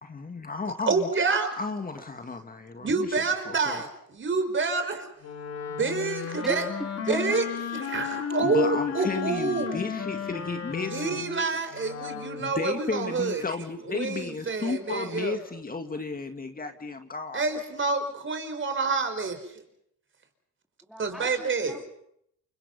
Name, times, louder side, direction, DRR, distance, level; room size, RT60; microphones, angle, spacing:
voice 1, 0.0-3.2 3.5-3.8 8.4-11.2 12.4-17.4, left 4 dB, 30° left, 6 dB, 2.2 m, -33 dB
voice 2, 0.9-1.5 2.8-5.1 5.7-6.6 7.1-7.4 7.7-9.8 10.9-13.4 13.9-15.3 17.3-19.6 21.0-21.8, right 4 dB, 40° right, 7 dB, 5.1 m, -28 dB
Wind instrument woodwind instrument, 5.2-12.6, left 7 dB, 55° left, 3.6 m, -34 dB
voice 3, 6.4-7.3 20.9-21.8, equal, ahead, 3 dB, 3.8 m, -37 dB
29.5 x 25.0 x 5.5 m, 0.73 s
cardioid pair, 90°, 30 cm